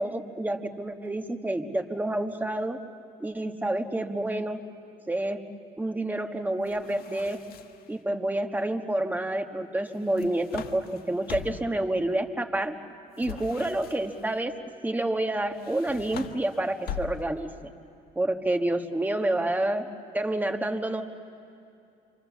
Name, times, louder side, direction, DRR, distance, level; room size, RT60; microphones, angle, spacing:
voice 1, 0.0-2.8 3.2-4.6 5.1-5.4 5.8-7.4 7.9-12.8 13.2-14.5 14.8-17.5 18.1-21.0, right 1 dB, 10° right, 5 dB, 1.4 m, -28 dB
sound 1, 6.7-7.9 9.9-11.8 13.2-14.3 15.5-17.5, left 9 dB, 65° left, 1.3 m, -41 dB
27.5 x 25.0 x 7.3 m, 2.6 s
cardioid pair, 110°, 17 cm